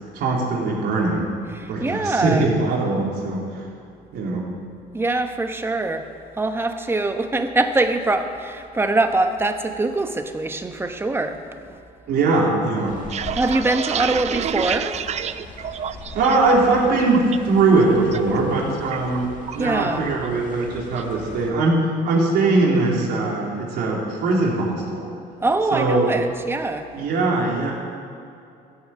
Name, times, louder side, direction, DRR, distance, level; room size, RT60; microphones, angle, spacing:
voice 1, 0.1-1.3 1.6-3.7 4.1-4.5 12.1-13.0 16.1-25.1 25.7-26.1 26.9-27.7, right 3 dB, 75° right, -3 dB, 3.4 m, -21 dB
voice 2, 1.5-2.5 4.9-6.1 6.4-11.4 11.7-11.8 13.3-15.0 18.3-18.4 19.6-20.1 25.4-26.9, right 2 dB, 15° right, 6 dB, 1.0 m, -23 dB
sound 1, 12.8-21.5, left 3 dB, 50° left, 1.8 m, -40 dB
sound 2, 12.9-16.5 16.9-17.4 17.8-18.2 18.5-19.7 20.0-20.3 20.6-21.1, right 8 dB, 40° right, 0.5 m, -29 dB
14.0 x 7.0 x 8.8 m, 2.5 s
cardioid pair, 110°, 17 cm